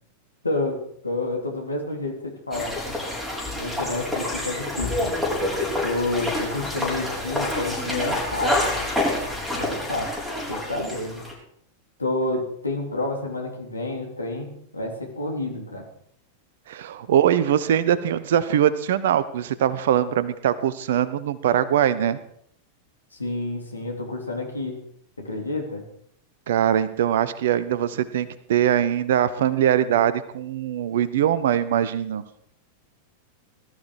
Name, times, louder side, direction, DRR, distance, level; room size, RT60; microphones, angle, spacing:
voice 1, 0.4-3.0 3.6-5.2 5.8-8.8 9.5-10.1 10.5-11.2 12.0-15.9 23.1-24.8 25.2-25.8, left 2 dB, 80° left, 1 dB, 3.4 m, -29 dB
sound 1, 2.5-11.3, left 1 dB, ahead, 6.2 m, -27 dB
voice 2, 16.7-22.2 26.5-32.2, right 10 dB, 60° right, 15 dB, 1.1 m, -22 dB
19.5 x 13.5 x 4.9 m, 0.67 s
figure-of-eight pair, 90°, 0 cm